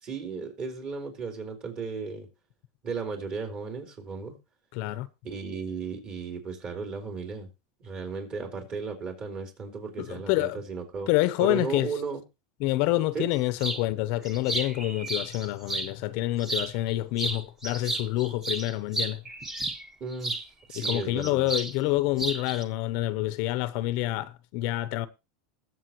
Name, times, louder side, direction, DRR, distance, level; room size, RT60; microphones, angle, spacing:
voice 1, 0.0-2.3 2.8-4.4 5.2-7.5 7.8-11.1 11.4-12.2 13.1-13.3 20.0-20.4 20.7-21.5, right 4 dB, 30° right, 4.1 m, -35 dB
voice 2, 4.7-5.1 10.0-10.6 11.1-11.9 12.6-19.2 20.8-25.1, left 17 dB, 55° left, 0.8 m, -27 dB
sound 1, 13.6-13.8 14.2-15.9 16.4-16.9 17.2-20.4 20.8-21.7 22.0-22.6, right 2 dB, 15° right, 1.4 m, -32 dB
20.5 x 7.5 x 3.0 m
supercardioid pair, 145°, 3 cm